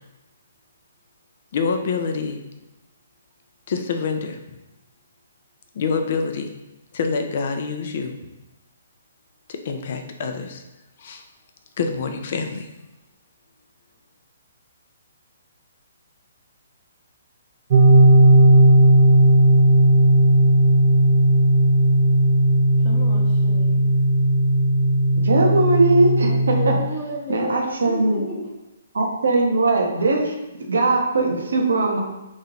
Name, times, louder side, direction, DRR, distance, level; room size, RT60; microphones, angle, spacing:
voice 1, 1.5-2.4 3.7-4.4 5.7-6.5 6.9-8.2 9.5-10.6 11.0-11.2 11.8-12.7, left 5 dB, 50° left, 0.5 m, -26 dB
sound 1, 17.7-26.8, right 1 dB, 50° right, 0.4 m, -15 dB
voice 2, 22.8-23.8 26.3-28.5, left 2 dB, 15° left, 0.9 m, -32 dB
voice 3, 25.2-26.7 27.3-28.2 28.9-30.3 30.6-32.0, right 2 dB, 70° right, 0.8 m, -20 dB
3.1 x 2.8 x 3.7 m
figure-of-eight pair, 130°, 0 cm